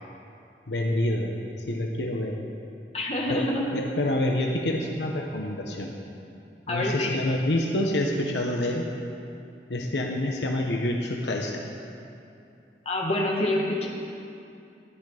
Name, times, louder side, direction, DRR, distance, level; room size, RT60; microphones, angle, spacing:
voice 1, 0.7-1.3 1.7-2.4 3.3-5.9 6.7-8.9 9.7-11.7, left 1 dB, 75° left, 1 dB, 1.0 m, -27 dB
voice 2, 2.9-3.6 6.7-7.1 12.9-13.9, left 1 dB, 35° left, -3 dB, 2.0 m, -26 dB
14.5 x 11.0 x 5.0 m, 2.6 s
head